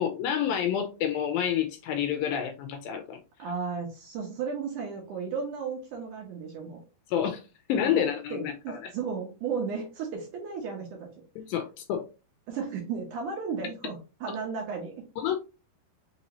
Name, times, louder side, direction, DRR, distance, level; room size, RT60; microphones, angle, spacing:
voice 1, 0.0-3.2 7.1-7.4 7.7-8.8 11.4-12.1 15.2-15.4, left 9 dB, 80° left, 2.2 m, -28 dB
voice 2, 3.4-6.8 7.9-8.0 8.3-11.1 12.5-15.0, right 5 dB, 70° right, 2.1 m, -34 dB
5.9 x 2.7 x 2.9 m
omnidirectional pair, 4.5 m